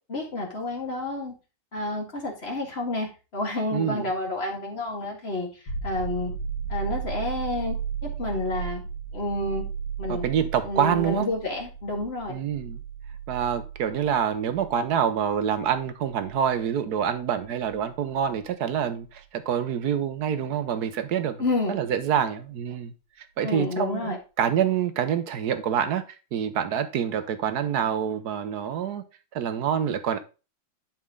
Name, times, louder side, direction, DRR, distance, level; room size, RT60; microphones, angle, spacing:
voice 1, 0.1-1.3 1.7-6.3 6.7-8.8 9.1-9.6 10.0-10.3 10.6-12.4 21.4-21.7 23.4-24.2, left 2 dB, 30° left, 2.1 m, -30 dB
voice 2, 3.7-4.1 10.1-11.3 12.3-12.8 13.3-21.4 21.7-22.9 23.4-26.0 26.3-29.0 29.3-30.2, right 8 dB, 60° right, 1.2 m, -26 dB
sound 1, 5.7-19.2 21.9-22.0, right 6 dB, 50° left, 2.6 m, -35 dB
11.0 x 4.5 x 3.7 m
omnidirectional pair, 2.2 m